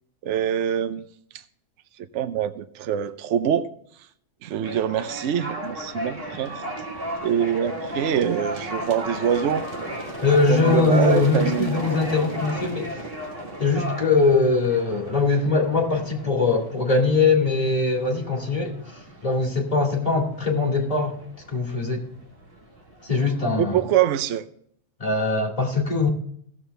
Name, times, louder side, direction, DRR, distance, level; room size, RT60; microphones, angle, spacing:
voice 1, 0.2-1.0 2.1-3.7 4.4-6.6 7.2-9.7 10.5-11.8 23.6-24.4, right 9 dB, 70° right, 11 dB, 0.9 m, -24 dB
sound 1, 4.6-23.5, right 1 dB, 45° right, 1.9 m, -35 dB
voice 2, 10.2-13.0 13.6-18.8 19.2-21.2 21.5-22.0 23.0-23.8 25.0-26.1, left 3 dB, 25° left, 0 dB, 2.2 m, -21 dB
16.0 x 7.3 x 3.3 m, 0.66 s
omnidirectional pair, 1.4 m